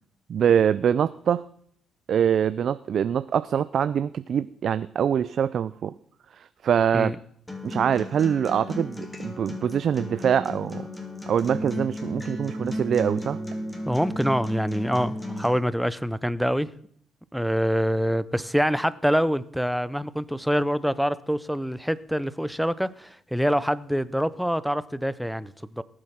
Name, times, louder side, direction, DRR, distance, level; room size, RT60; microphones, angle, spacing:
voice 1, 0.3-1.4 2.1-5.9 6.4-7.1 7.6-10.9 11.3-13.4, right 8 dB, 60° right, 0.5 m, -24 dB
Acoustic guitar, 7.5-15.5, left 1 dB, 15° left, 3.0 m, -34 dB
voice 2, 13.9-16.7 17.3-25.8, equal, ahead, 0.7 m, -25 dB
18.5 x 7.9 x 5.7 m
cardioid pair, 90°, 0 cm